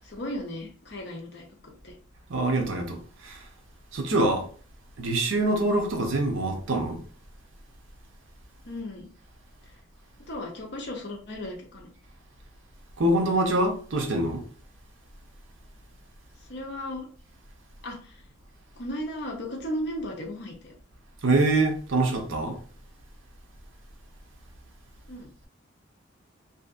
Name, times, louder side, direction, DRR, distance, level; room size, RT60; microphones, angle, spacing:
voice 1, 0.0-1.9 8.6-9.1 10.3-11.9 16.5-17.1 17.8-18.2 18.8-20.7 25.1-25.3, left 1 dB, 55° left, 0.7 m, -35 dB
voice 2, 2.3-3.4 3.9-4.5 5.0-7.0 13.0-14.5 21.2-22.6, right 2 dB, 75° right, 0.6 m, -25 dB
2.7 x 2.4 x 2.4 m
head